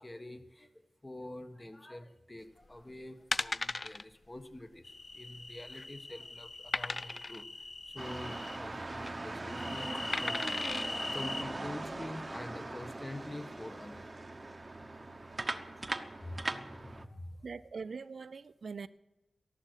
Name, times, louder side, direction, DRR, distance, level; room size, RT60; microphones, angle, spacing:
voice 1, 0.0-10.4 11.1-14.1 16.2-17.4, left 1 dB, 25° left, 7 dB, 1.5 m, -46 dB
sound 1, 2.6-2.8 3.3-4.0 4.4-4.5 4.8-4.9 5.5-5.9 6.7-7.4 8.7-9.1 10.1-10.9 11.5-11.6, left 2 dB, 40° left, 0.4 m, -36 dB
sound 2, 4.8-8.6 9.5-11.4, left 3 dB, 55° left, 1.2 m, -42 dB
sound 3, 8.0-17.1, right 2 dB, 35° right, 1.0 m, -40 dB
voice 2, 17.4-18.9, right 5 dB, 70° right, 16 dB, 0.4 m, -42 dB
13.5 x 11.5 x 6.5 m, 1.0 s
cardioid pair, 50°, 0 cm